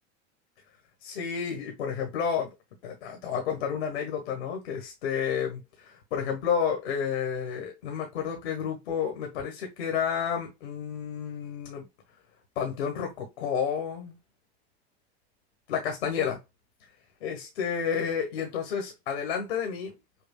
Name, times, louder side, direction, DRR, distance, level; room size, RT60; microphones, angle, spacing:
voice 1, 1.0-2.5 2.8-11.8 12.5-14.2 15.7-16.4 17.2-19.9, left 7 dB, 85° left, 1.3 m, -31 dB
5.9 x 2.3 x 2.2 m
hypercardioid pair, 80°, 33 cm